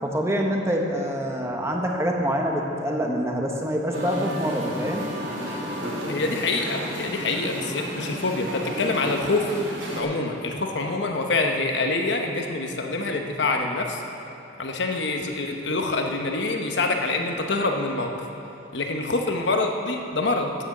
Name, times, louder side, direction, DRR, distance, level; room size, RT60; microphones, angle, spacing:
voice 1, 0.0-5.1, equal, 15° right, 0 dB, 1.1 m, -26 dB
Musical instrument, 3.9-10.0, equal, 80° right, 2.6 m, -32 dB
voice 2, 6.1-9.5 9.9-14.0 14.6-18.1 18.7-20.6, left 3 dB, 70° left, 3 dB, 1.0 m, -26 dB
9.0 x 8.8 x 7.2 m, 3.0 s
head